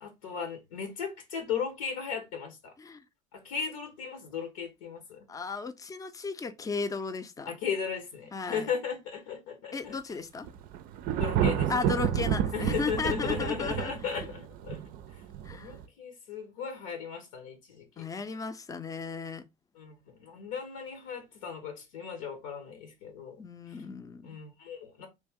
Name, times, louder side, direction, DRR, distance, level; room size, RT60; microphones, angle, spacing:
voice 1, 0.0-2.7 3.3-5.2 7.5-10.0 11.2-11.7 12.5-14.8 15.5-18.1 19.7-23.4 23.7-23.8 24.2-25.1, left 6 dB, 80° left, 1.0 m, -36 dB
voice 2, 5.3-7.5 8.3-8.7 9.7-10.5 11.7-13.9 15.4-15.8 18.0-19.4 23.4-24.3, left 4 dB, 20° left, 0.5 m, -35 dB
Thunder, 10.4-15.8, right 10 dB, 55° right, 0.4 m, -30 dB
3.2 x 2.6 x 3.5 m
hypercardioid pair, 70°, 17 cm